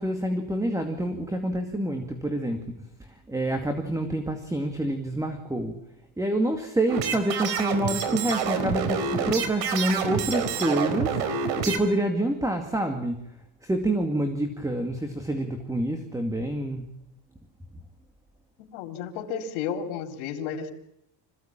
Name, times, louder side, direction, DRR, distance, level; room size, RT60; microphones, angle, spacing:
voice 1, 0.0-2.7 3.0-5.8 6.2-13.4 13.6-16.9, right 1 dB, 5° right, 6 dB, 2.2 m, -27 dB
sound 1, 6.9-11.8, right 6 dB, 70° right, 4.2 m, -27 dB
voice 2, 18.6-20.7, left 7 dB, 90° left, 5 dB, 4.1 m, -32 dB
26.0 x 16.5 x 8.8 m, 0.79 s
cardioid pair, 145°, 47 cm